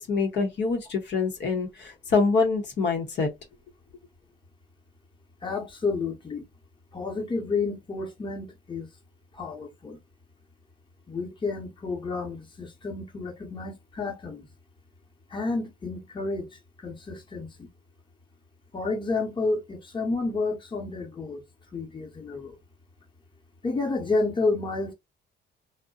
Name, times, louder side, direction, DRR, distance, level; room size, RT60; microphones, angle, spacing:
voice 1, 0.0-3.3, left 4 dB, 65° left, 0.8 m, -25 dB
voice 2, 5.4-6.4 6.9-8.9 9.3-10.0 11.1-14.5 15.3-17.7 18.7-21.4 21.7-22.5 23.6-24.9, left 3 dB, 25° left, 0.9 m, -30 dB
2.6 x 2.1 x 2.3 m
cardioid pair, 90°, 20 cm